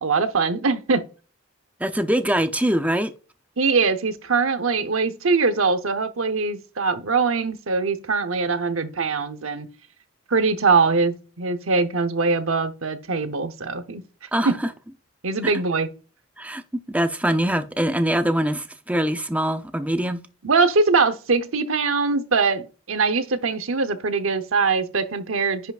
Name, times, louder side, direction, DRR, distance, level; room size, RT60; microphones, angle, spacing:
voice 1, 0.0-1.0 3.6-9.7 10.3-14.0 14.4-14.6 15.2-15.9 20.4-25.7, right 4 dB, 85° right, 0.9 m, -22 dB
voice 2, 1.8-3.1 14.3-14.5 16.4-16.6 16.9-20.2, right 1 dB, 5° right, 0.6 m, -23 dB
10.0 x 5.7 x 2.5 m
head